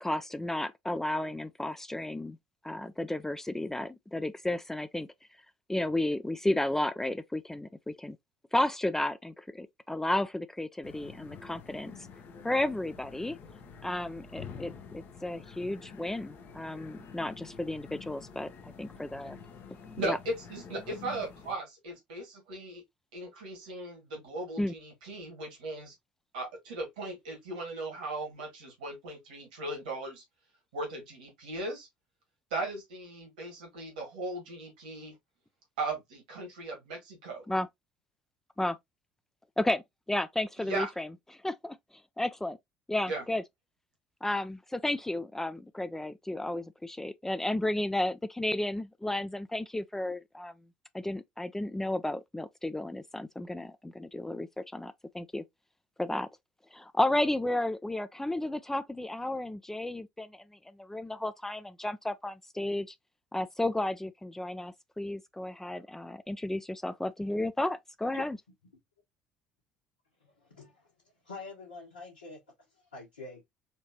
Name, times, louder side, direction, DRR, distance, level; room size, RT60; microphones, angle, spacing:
voice 1, 0.0-2.4 2.6-5.1 5.7-8.2 8.5-11.9 12.4-13.4 13.8-19.4 20.0-20.2 24.6-24.7 37.5-37.7 38.6-38.8 39.6-39.8 40.1-41.1 41.4-41.8 42.2-42.6 42.9-43.4 44.2-50.5 50.9-55.4 56.0-56.3 56.7-60.4 60.8-62.9 63.3-68.4, left 1 dB, 10° left, 0.4 m, -33 dB
sound 1, 10.8-21.6, left 6 dB, 45° left, 0.8 m, -48 dB
voice 2, 20.0-22.8 23.1-25.9 26.3-30.2 30.7-31.9 32.5-35.1 35.8-37.5 40.6-40.9 43.1-43.2, right 2 dB, 70° right, 1.8 m, -37 dB
voice 3, 70.2-70.9 71.2-72.4 72.9-73.4, left 3 dB, 85° left, 1.4 m, -45 dB
4.4 x 2.8 x 2.8 m
figure-of-eight pair, 60°, 5 cm